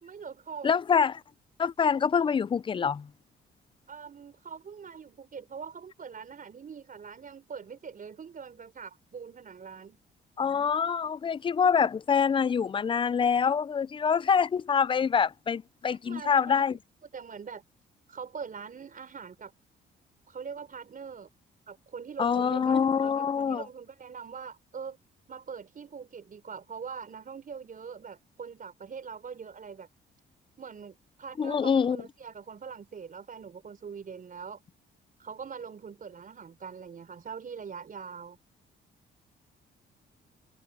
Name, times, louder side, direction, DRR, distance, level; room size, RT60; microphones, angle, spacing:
voice 1, 0.0-0.7 3.9-10.0 16.1-16.7 17.1-17.6 18.1-19.5 20.3-21.3 21.7-25.0 25.3-29.9 30.6-34.6 35.2-38.4, right 6 dB, 45° right, 4.6 m, -43 dB
voice 2, 0.6-1.2 1.6-3.1 10.4-16.8 22.2-23.6 31.4-32.0, left 6 dB, 25° left, 0.4 m, -25 dB
cardioid pair, 90°, 20 cm